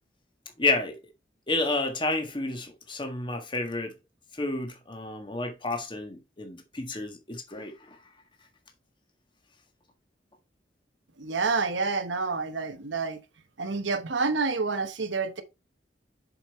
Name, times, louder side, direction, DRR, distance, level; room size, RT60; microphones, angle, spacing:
voice 1, 0.6-1.0 1.5-3.9 4.4-7.7, left 2 dB, 25° left, 1.5 m, -30 dB
voice 2, 11.2-13.2 13.6-15.4, right 4 dB, 85° right, 1.0 m, -28 dB
7.0 x 5.4 x 4.2 m
head